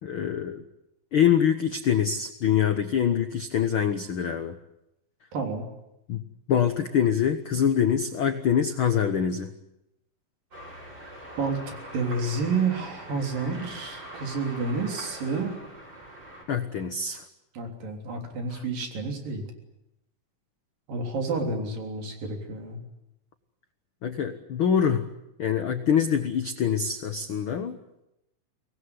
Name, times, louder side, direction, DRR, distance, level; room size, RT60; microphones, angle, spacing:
voice 1, 0.0-0.6 1.1-4.6 6.1-6.2 6.5-9.5 16.5-17.2 18.5-18.6 24.0-25.1 25.4-27.8, left 8 dB, 85° left, 8 dB, 1.1 m, -25 dB
voice 2, 5.3-5.7 11.4-15.6 17.6-19.5 20.9-22.8, right 3 dB, 70° right, 3 dB, 5.2 m, -30 dB
sound 1, 10.5-16.4, right 1 dB, 30° right, 8.1 m, -43 dB
24.5 x 19.0 x 9.7 m, 0.87 s
omnidirectional pair, 4.1 m